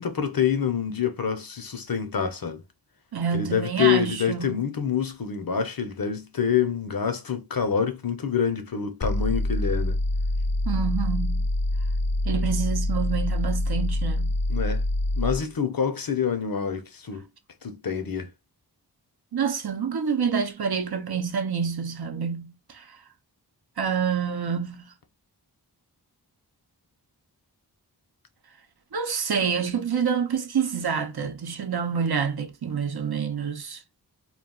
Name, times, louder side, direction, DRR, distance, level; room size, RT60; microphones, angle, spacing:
voice 1, 0.0-2.6 3.3-10.0 14.5-14.8 15.2-17.3 17.6-18.3, left 7 dB, 60° left, 0.7 m, -26 dB
voice 2, 3.1-4.5 10.7-11.4 12.2-14.4 19.3-22.9 23.8-24.9 28.9-33.8, right 7 dB, 65° right, 0.7 m, -27 dB
sound 1, 9.0-15.4, left 1 dB, 30° left, 0.4 m, -25 dB
2.3 x 2.3 x 3.6 m
wide cardioid pair, 50°, 40 cm